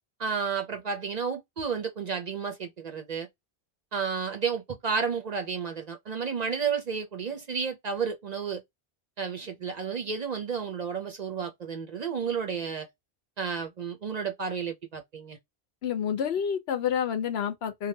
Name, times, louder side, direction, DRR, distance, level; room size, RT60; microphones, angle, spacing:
voice 1, 0.2-3.3 3.9-8.6 9.2-12.9 13.4-15.4, right 6 dB, 50° right, 0.6 m, -32 dB
voice 2, 15.8-17.9, left 8 dB, 80° left, 0.9 m, -29 dB
3.2 x 2.1 x 2.7 m
omnidirectional pair, 1.1 m